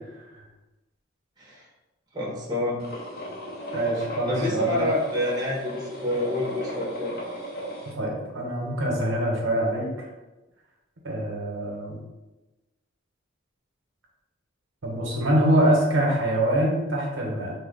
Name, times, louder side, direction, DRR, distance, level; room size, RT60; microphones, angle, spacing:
voice 1, 2.1-2.8 4.3-7.1, left 1 dB, 20° right, -4 dB, 0.6 m, -28 dB
sound 1, 2.8-7.9, equal, 50° left, 0.6 m, -36 dB
voice 2, 3.7-4.9 7.9-10.1 11.0-12.0 14.8-17.5, right 1 dB, 80° right, -1 dB, 0.8 m, -24 dB
2.7 x 2.1 x 3.8 m, 1.1 s
head